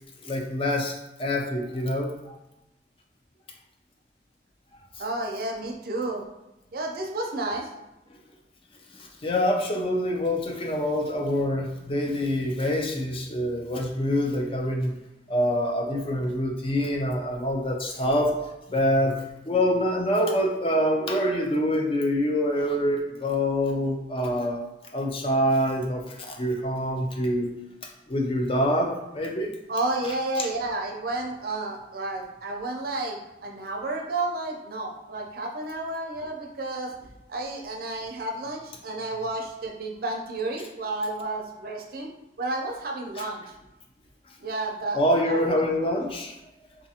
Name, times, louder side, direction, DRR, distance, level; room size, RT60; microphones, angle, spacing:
voice 1, 0.2-0.9 1.2-2.4 8.9-14.9 15.3-18.3 18.7-19.1 19.4-24.6 24.9-27.5 28.1-29.5 30.4-30.5 43.2-43.3 44.9-46.3, equal, 30° left, 1 dB, 0.5 m, -25 dB
voice 2, 5.0-6.2 6.7-7.7 29.7-36.9 37.3-42.1 42.4-43.4 44.4-45.6, right 2 dB, 55° right, 1 dB, 0.5 m, -31 dB
3.9 x 2.4 x 2.8 m, 0.93 s
head